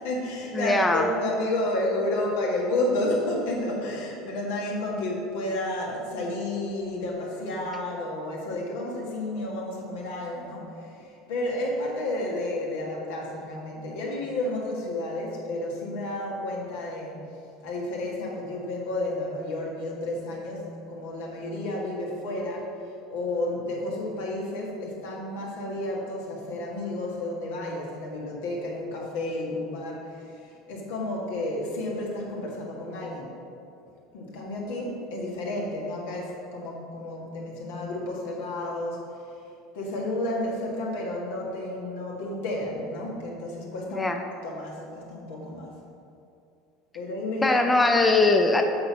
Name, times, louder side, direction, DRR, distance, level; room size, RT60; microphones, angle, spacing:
voice 1, 0.0-10.7 11.0-17.2 17.6-20.6 20.9-22.7 23.1-30.4 30.7-33.3 34.1-39.0 39.7-44.1 44.4-45.7 46.9-47.7, left 1 dB, 90° left, -3 dB, 1.8 m, -31 dB
voice 2, 0.5-1.1 43.9-44.2 47.4-48.6, left 2 dB, 10° left, 4 dB, 0.4 m, -21 dB
7.6 x 4.0 x 5.9 m, 2.6 s
supercardioid pair, 140°, 0 cm